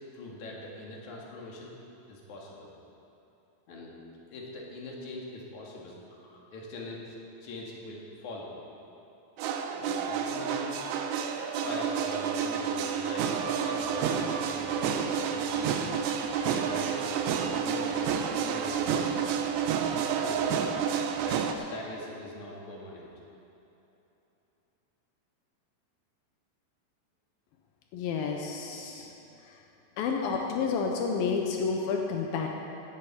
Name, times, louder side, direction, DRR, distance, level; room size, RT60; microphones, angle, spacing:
voice 1, 0.1-1.8 2.1-2.7 3.7-3.9 4.3-7.2 7.4-8.5 9.7-10.8 11.6-15.0 15.3-15.9 16.5-18.1 18.4-19.4 19.9-20.5 21.2-23.1, left 2 dB, 50° left, -3 dB, 2.7 m, -42 dB
sound 1, 9.4-21.5, right 7 dB, 80° right, 2.6 m, -29 dB
voice 2, 27.9-29.1 29.5-29.6 30.0-32.5, left 5 dB, 85° left, 1 dB, 2.1 m, -30 dB
16.5 x 13.0 x 4.4 m, 3.0 s
omnidirectional pair, 5.3 m